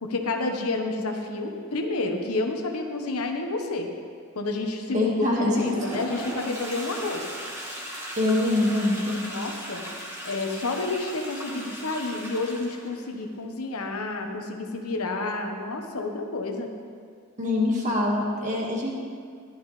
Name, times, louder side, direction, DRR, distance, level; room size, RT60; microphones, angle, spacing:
voice 1, 0.0-3.9 4.3-5.1 5.4-7.3 8.2-8.4 9.1-9.9 10.2-16.7, left 2 dB, 85° left, 3 dB, 1.1 m, -30 dB
voice 2, 4.9-5.7 8.2-9.2 17.4-18.9, left 2 dB, 35° right, -2 dB, 1.8 m, -24 dB
Toilet flush, 5.4-13.0, equal, 10° right, 1.6 m, -37 dB
14.5 x 11.5 x 3.3 m, 2.1 s
head